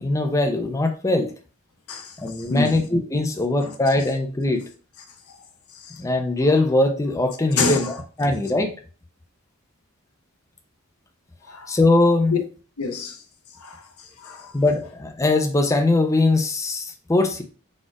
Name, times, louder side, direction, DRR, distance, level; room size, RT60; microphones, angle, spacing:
voice 1, 0.0-1.3 2.2-4.6 6.0-8.7 11.7-12.3 14.5-17.4, left 2 dB, 15° left, 0.5 m, -21 dB
voice 2, 1.9-2.9 3.6-3.7 5.3-5.4 5.7-6.0 7.6-8.0 11.5-11.8 12.3-12.4 12.8-13.2 13.5-14.5, left 4 dB, 85° left, 0.8 m, -28 dB
4.3 x 2.4 x 4.6 m
head